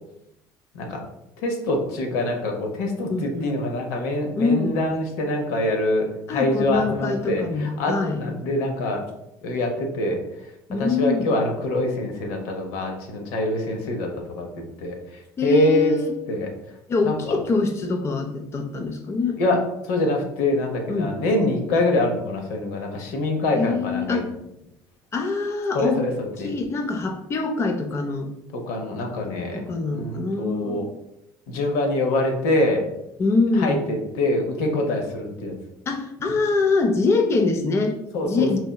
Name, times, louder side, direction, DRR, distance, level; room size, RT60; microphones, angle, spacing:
voice 1, 1.4-9.0 9.4-10.2 10.8-15.0 15.4-15.9 16.3-16.5 17.0-17.4 19.4-19.6 19.9-24.2 25.7-26.1 26.4-26.5 28.5-29.6 29.9-30.9 31.5-32.8 33.6-35.5 38.1-38.6, left 1 dB, 85° left, 2 dB, 0.6 m, -24 dB
voice 2, 3.1-3.6 4.4-4.8 6.3-8.2 10.7-11.3 15.4-16.1 16.9-19.4 20.9-21.2 23.5-24.3 25.1-26.0 26.4-28.3 29.5-30.9 33.2-33.9 35.9-38.0 38.2-38.6, left 3 dB, 30° left, 4 dB, 0.4 m, -24 dB
3.8 x 2.0 x 2.2 m, 0.85 s
supercardioid pair, 100°, 9 cm